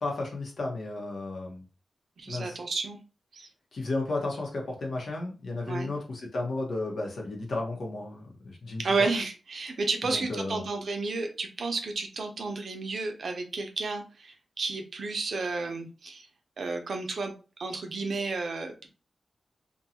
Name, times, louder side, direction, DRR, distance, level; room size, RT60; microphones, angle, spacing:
voice 1, 0.0-1.6 2.3-2.6 3.7-9.1 10.0-10.6, left 2 dB, 70° left, 0 dB, 0.9 m, -33 dB
voice 2, 2.2-3.0 3.3-3.5 5.7-5.9 8.8-16.3 16.6-17.3 17.6-19.0, right 3 dB, 70° right, 4 dB, 0.6 m, -32 dB
2.6 x 2.3 x 2.8 m, 0.34 s
cardioid pair, 65°, 0 cm